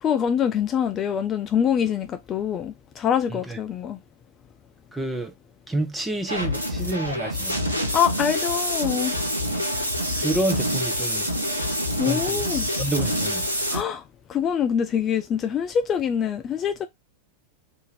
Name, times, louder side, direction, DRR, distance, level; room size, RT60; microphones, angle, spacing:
voice 1, 0.0-4.0 7.9-9.2 12.0-12.7 13.7-14.0 14.3-16.9, left 8 dB, 30° left, 0.3 m, -24 dB
voice 2, 4.9-5.3 5.7-7.6 10.2-11.3 12.1-12.4 12.8-13.4, right 2 dB, 10° right, 0.7 m, -28 dB
sound 1, 6.3-13.8, equal, 85° right, 0.7 m, -26 dB
2.7 x 2.5 x 4.1 m
figure-of-eight pair, 90°, 0 cm